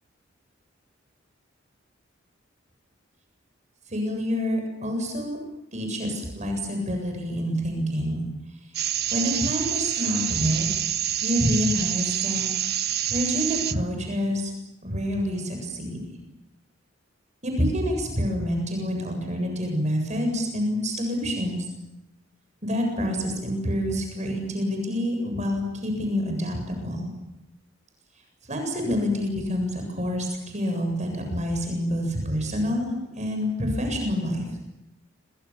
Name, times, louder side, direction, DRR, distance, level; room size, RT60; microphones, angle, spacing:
voice 1, 3.9-5.4 5.7-8.2 9.1-10.7 11.2-12.4 13.1-14.5 14.8-16.0 17.4-21.7 22.6-27.1 28.5-32.9 33.1-34.5, equal, 40° right, 3 dB, 7.8 m, -27 dB
sound 1, 8.7-13.7, right 11 dB, 55° right, 1.2 m, -27 dB
29.5 x 25.0 x 7.4 m, 0.91 s
head